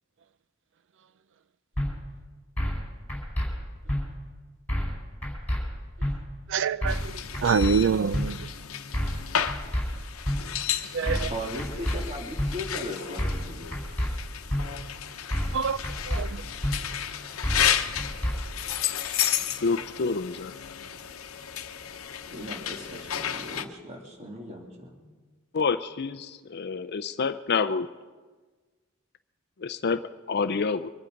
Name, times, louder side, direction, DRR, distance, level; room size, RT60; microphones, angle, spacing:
sound 1, 1.8-1.9 2.6-2.8 3.1-3.5 3.9-4.0 4.7-5.0 5.2-5.6 6.0-6.1 6.8-7.1 7.3-7.7 8.1-8.3 8.9-9.2 9.5-9.8 10.2-10.4 11.1-11.3 11.6-12.0 12.4-12.5 13.2-13.5 13.7-14.1 14.5-14.6 15.3-15.6 15.8-16.2 16.6-16.7 17.4-17.7 18.0-18.3, equal, 5° left, 5.0 m, -27 dB
voice 1, 6.5-8.5 10.9-11.3 15.5-15.8 16.1-16.4, right 6 dB, 60° right, 0.4 m, -26 dB
sound 2, 6.9-23.6, left 9 dB, 85° left, 0.9 m, -33 dB
voice 2, 11.3-14.1 22.3-25.1, equal, 30° right, 2.6 m, -38 dB
voice 3, 19.6-20.5 25.5-27.9 29.6-30.9, left 5 dB, 50° left, 0.5 m, -28 dB
24.0 x 11.0 x 5.2 m
head